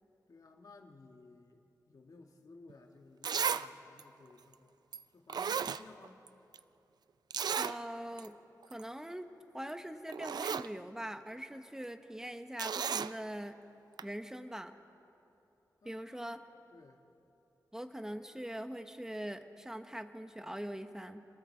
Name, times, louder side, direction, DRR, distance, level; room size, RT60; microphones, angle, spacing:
voice 1, 0.3-4.7 5.1-6.2 15.8-16.4 16.7-17.0, left 3 dB, 60° left, 3 dB, 1.6 m, -57 dB
Zipper (clothing), 2.7-2.8 3.2-3.7 4.0-4.1 4.9-5.0 5.3-6.3 6.5-6.6 7.3-7.8 8.2-8.3 8.6-8.8 9.7-9.8 10.1-10.7 12.6-13.1 14.0-14.1, right 7 dB, 80° right, 0.4 m, -34 dB
voice 2, 7.6-8.4 8.7-9.3 9.5-13.6 14.0-14.8 15.8-16.4 17.7-21.3, equal, 10° right, 8 dB, 1.0 m, -42 dB
30.0 x 19.5 x 4.5 m, 2.9 s
wide cardioid pair, 100°, 7 cm